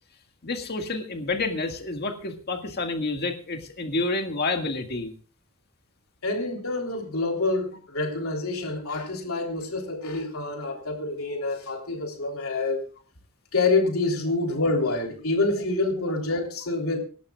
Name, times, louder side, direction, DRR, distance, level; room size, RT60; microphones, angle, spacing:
voice 1, 0.4-5.1 14.3-14.4, left 3 dB, 50° left, 5 dB, 1.9 m, -29 dB
voice 2, 6.2-12.8 13.5-17.0, left 3 dB, 70° left, 1 dB, 3.5 m, -27 dB
26.5 x 11.5 x 2.4 m, 0.37 s
head